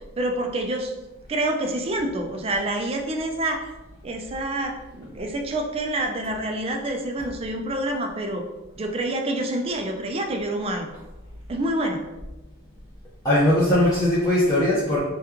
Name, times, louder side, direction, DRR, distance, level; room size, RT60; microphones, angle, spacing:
voice 1, 0.2-0.9 1.3-3.7 4.0-8.4 8.8-10.9 11.5-12.0, right 1 dB, 25° right, 4 dB, 0.3 m, -27 dB
voice 2, 13.2-15.0, left 1 dB, 15° left, -10 dB, 0.6 m, -19 dB
2.9 x 2.3 x 3.5 m, 1.1 s
head